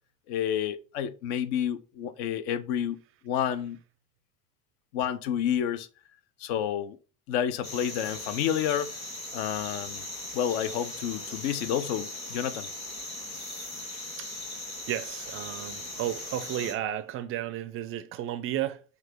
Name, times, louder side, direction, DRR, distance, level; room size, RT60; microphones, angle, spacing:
voice 1, 0.3-3.0 3.2-3.8 4.9-5.9 6.4-7.0 7.3-8.9 9.3-10.1 10.3-12.7, left 9 dB, 55° left, 0.5 m, -29 dB
sound 1, 7.6-16.7, left 2 dB, 85° left, 1.0 m, -39 dB
voice 2, 14.9-18.8, right 12 dB, 35° right, 0.4 m, -33 dB
5.5 x 2.3 x 3.4 m
figure-of-eight pair, 55°, 40 cm